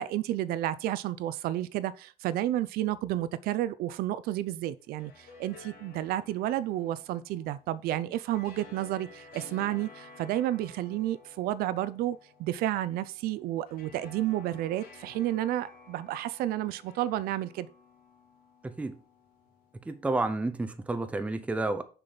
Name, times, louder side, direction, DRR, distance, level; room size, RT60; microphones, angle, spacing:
voice 1, 0.0-17.7, right 13 dB, 80° right, 0.5 m, -31 dB
sound 1, 4.8-20.0, left 4 dB, 75° left, 2.0 m, -53 dB
voice 2, 18.6-19.0 19.9-21.8, right 2 dB, 10° right, 0.6 m, -30 dB
6.5 x 6.1 x 4.0 m
cardioid pair, 155°, 15 cm